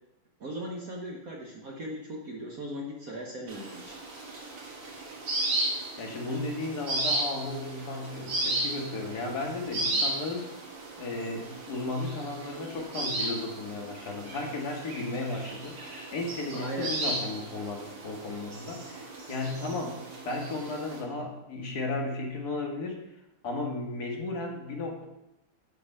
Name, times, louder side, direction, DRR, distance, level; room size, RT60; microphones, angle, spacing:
voice 1, 0.4-4.0 16.5-16.9, equal, 50° right, 0 dB, 1.2 m, -38 dB
sound 1, 3.5-21.0, right 2 dB, 80° right, 2.7 m, -35 dB
voice 2, 6.0-10.5 11.0-23.0 23.4-25.0, left 2 dB, 50° left, 1 dB, 1.8 m, -34 dB
7.3 x 6.6 x 5.5 m, 0.90 s
omnidirectional pair, 2.4 m